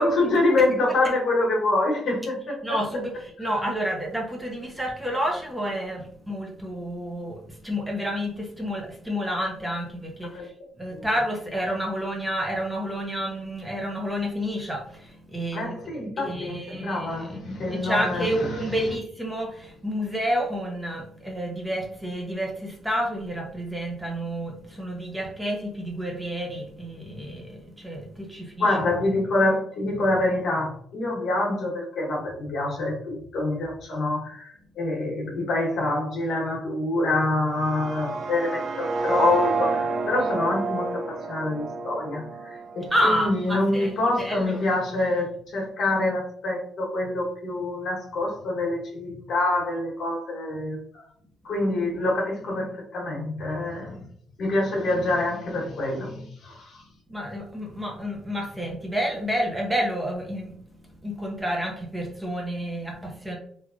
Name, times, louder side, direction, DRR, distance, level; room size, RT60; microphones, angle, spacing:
voice 1, 0.0-2.8 10.3-10.5 10.9-11.1 15.5-18.9 28.6-51.0 51.4-54.0 54.4-56.8, left 2 dB, 65° left, -1 dB, 1.1 m, -26 dB
voice 2, 2.6-10.3 10.8-15.7 16.2-17.3 17.7-28.8 42.9-44.6 57.1-60.5 61.0-63.4, equal, 10° right, 0 dB, 0.7 m, -29 dB
sound 1, 37.5-43.5, right 3 dB, 45° right, 0.3 m, -29 dB
3.3 x 2.5 x 2.4 m, 0.63 s
cardioid pair, 90°, 0 cm